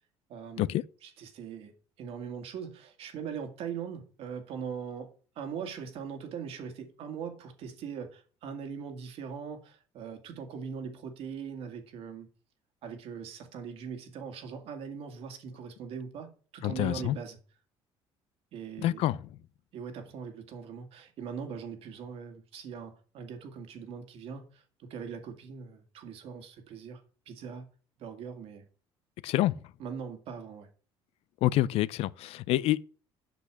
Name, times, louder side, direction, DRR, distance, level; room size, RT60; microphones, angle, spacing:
voice 1, 0.3-0.7 1.0-1.7 2.0-12.3 12.8-17.4 18.5-19.0 19.7-27.7 28.0-28.6 29.8-30.7, right 6 dB, 70° right, 2.1 m, -41 dB
voice 2, 16.6-17.2 18.8-19.2 29.2-29.6 31.4-32.8, left 15 dB, 70° left, 0.5 m, -27 dB
8.2 x 6.3 x 6.1 m
cardioid pair, 100°, 11 cm